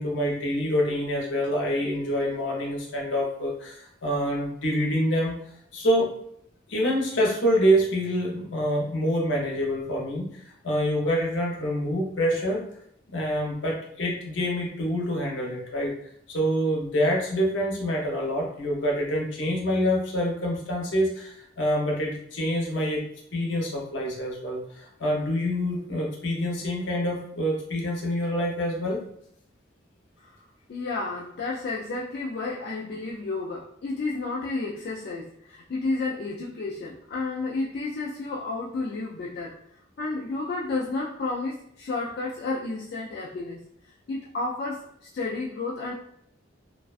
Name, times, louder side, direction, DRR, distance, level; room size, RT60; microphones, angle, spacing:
voice 1, 0.0-5.4 5.7-6.1 6.7-12.6 13.1-15.9 16.3-23.0 23.3-29.0, equal, 80° left, -2 dB, 0.7 m, -26 dB
voice 2, 30.7-39.6 40.0-45.9, left 3 dB, 55° left, -4 dB, 0.3 m, -31 dB
2.4 x 2.2 x 2.4 m, 0.71 s
head